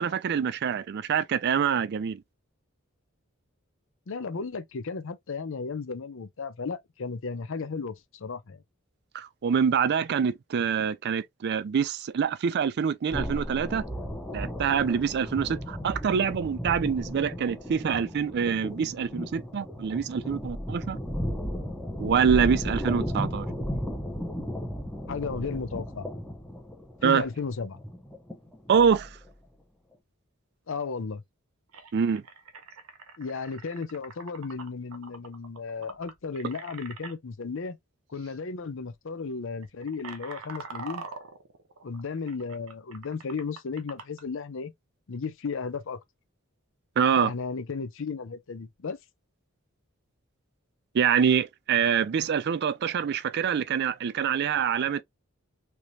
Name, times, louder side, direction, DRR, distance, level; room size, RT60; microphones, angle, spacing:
voice 1, 0.0-2.2 9.1-13.8 14.3-21.0 22.0-23.5 27.0-27.2 28.7-29.1 31.9-32.2 47.0-47.3 50.9-55.0, right 7 dB, 50° right, 0.4 m, -25 dB
voice 2, 4.1-8.6 25.1-26.1 27.0-27.8 30.7-31.2 33.2-37.8 38.1-41.0 41.8-44.7 45.1-46.0 47.2-49.0, left 4 dB, 65° left, 0.6 m, -34 dB
sound 1, 13.1-29.3, equal, 5° left, 0.8 m, -34 dB
sound 2, 31.7-37.1 38.1-38.4 38.7-38.9 39.5-44.2, right 4 dB, 90° right, 0.8 m, -44 dB
3.3 x 2.9 x 2.6 m
head